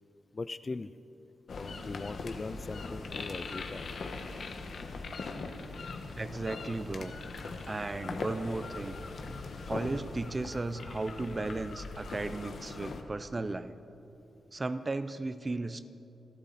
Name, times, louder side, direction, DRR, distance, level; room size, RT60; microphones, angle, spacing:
voice 1, 0.3-0.9 1.5-3.9, left 3 dB, 30° left, 14 dB, 0.4 m, -40 dB
sound 1, 1.5-13.0, left 3 dB, 60° left, 1.3 m, -40 dB
voice 2, 6.2-7.1 7.7-9.0 9.6-13.8 14.5-15.8, right 2 dB, 25° right, 12 dB, 0.6 m, -35 dB
28.0 x 12.0 x 4.2 m, 2.9 s
wide cardioid pair, 115°, 0 cm